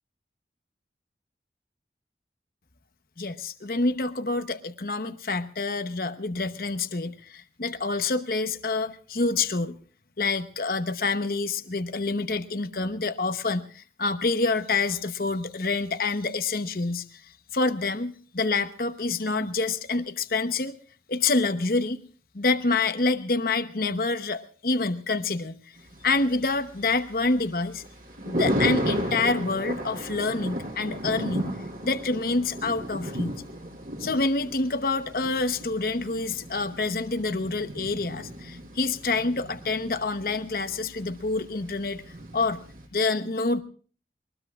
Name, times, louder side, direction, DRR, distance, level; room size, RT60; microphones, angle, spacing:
voice 1, 3.2-9.8 10.2-20.8 21.1-22.0 22.3-25.6 26.0-27.8 28.2-31.5 31.8-33.3 34.0-42.0 42.3-42.6 42.9-43.6, left 3 dB, 55° left, 9 dB, 0.9 m, -27 dB
Thunder, 25.8-42.9, equal, 55° right, 6.4 m, -34 dB
22.0 x 21.0 x 2.4 m, 0.42 s
head